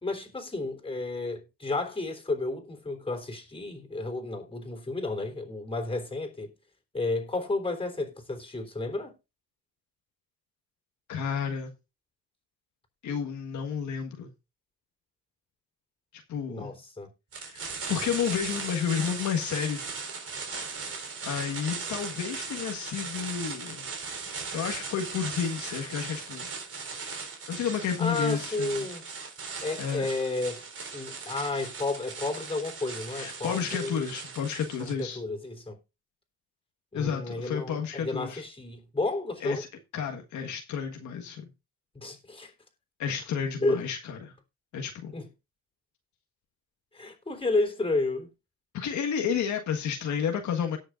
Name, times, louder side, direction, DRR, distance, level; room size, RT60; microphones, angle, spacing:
voice 1, 0.0-6.5 6.9-9.1 16.5-17.1 28.0-29.0 29.6-30.6 30.9-34.1 34.8-35.8 36.9-39.6 41.9-42.5 43.6-43.8 45.1-45.3 46.9-48.3, left 2 dB, 20° left, 3.6 m, -32 dB
voice 2, 11.1-11.7 13.0-14.3 16.3-16.7 17.4-19.8 21.2-23.9 24.5-26.5 27.5-28.9 29.8-30.1 33.1-35.2 36.9-38.4 39.4-39.7 39.9-41.5 43.0-44.3 44.7-45.1 48.7-50.8, left 7 dB, 75° left, 1.6 m, -31 dB
sound 1, 17.3-35.0, right 5 dB, 50° right, 3.9 m, -38 dB
18.0 x 6.5 x 2.5 m
cardioid pair, 90°, 30 cm